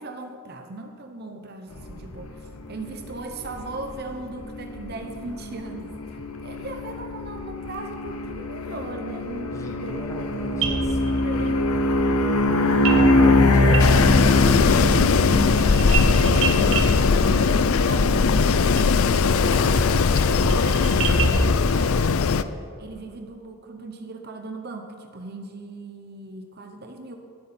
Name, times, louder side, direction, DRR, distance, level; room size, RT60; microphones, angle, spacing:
voice 1, 0.0-10.4 11.2-11.8 12.4-12.6 15.5-22.2 22.8-27.2, right 2 dB, 45° right, 5 dB, 0.9 m, -38 dB
sound 1, 1.8-21.1, left 2 dB, 90° left, 1.0 m, -24 dB
voice 2, 9.5-11.5 13.1-14.5, equal, 15° left, 1 dB, 1.4 m, -38 dB
sound 2, 10.3-10.4 10.6-11.5 12.8-13.0 13.3-14.3 14.6-21.6, right 3 dB, 65° right, 1.4 m, -28 dB
Wind, 13.8-22.4, left 5 dB, 70° left, 0.5 m, -20 dB
18.5 x 8.1 x 4.4 m, 2.2 s
head